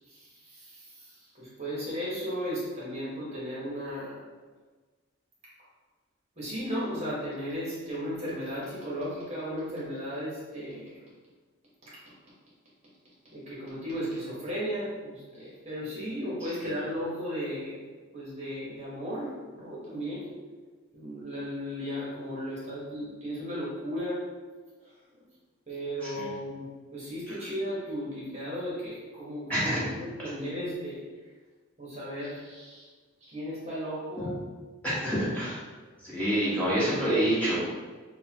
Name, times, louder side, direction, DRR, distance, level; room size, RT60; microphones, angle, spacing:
voice 1, 0.1-4.2 6.4-11.0 11.8-11.9 13.3-17.8 18.1-20.3 20.9-24.3 24.8-24.9 25.7-31.0 31.8-32.9 33.2-34.4, equal, 30° right, -8 dB, 1.2 m, -35 dB
voice 2, 26.0-26.3 27.3-27.4 29.5-29.9 34.8-35.6 36.0-37.6, right 1 dB, 5° left, -10 dB, 1.4 m, -27 dB
6.5 x 2.3 x 2.9 m, 1.4 s
head